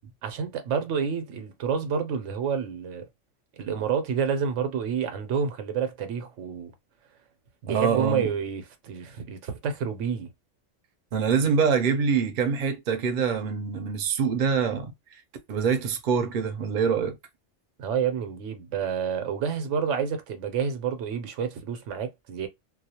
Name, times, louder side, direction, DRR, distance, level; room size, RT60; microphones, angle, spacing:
voice 1, 0.2-3.1 3.6-6.7 7.6-10.3 17.8-22.5, right 7 dB, 85° right, 1.0 m, -29 dB
voice 2, 7.7-8.3 11.1-14.9 15.5-17.2, right 6 dB, 50° right, 0.6 m, -25 dB
2.3 x 2.1 x 2.8 m
omnidirectional pair, 1.2 m